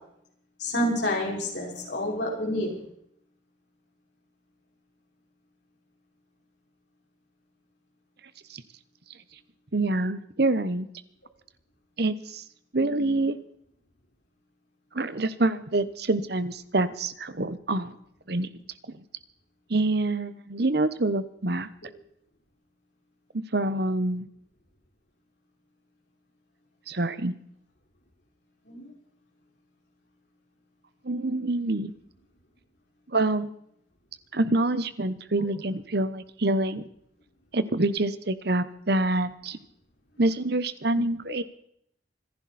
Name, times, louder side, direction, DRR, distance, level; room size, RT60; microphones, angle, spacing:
voice 1, 0.6-2.8 28.7-28.9, left 1 dB, 60° left, -2 dB, 5.7 m, -28 dB
voice 2, 9.7-10.9 12.0-12.4 12.7-13.4 14.9-17.9 18.3-18.5 19.7-21.7 23.5-24.3 26.9-27.3 31.0-31.9 33.1-33.5 34.3-36.8 37.5-39.6 40.2-41.4, right 2 dB, 55° right, 13 dB, 1.1 m, -26 dB
26.5 x 11.0 x 4.3 m, 0.70 s
head